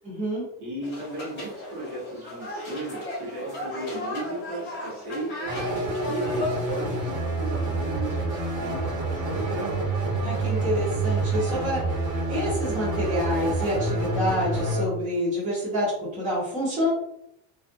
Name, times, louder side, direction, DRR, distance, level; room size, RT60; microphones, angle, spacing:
voice 1, 0.0-0.5 10.2-12.0 12.3-16.9, equal, 15° right, -9 dB, 0.9 m, -27 dB
voice 2, 0.6-5.6 6.1-9.9, right 1 dB, 45° right, -6 dB, 1.3 m, -36 dB
sound 1, 0.8-6.5, left 1 dB, 25° left, 1.1 m, -35 dB
sound 2, 5.5-14.8, right 2 dB, 65° right, 1.3 m, -27 dB
2.6 x 2.5 x 2.5 m, 0.78 s
cardioid pair, 175°, 48 cm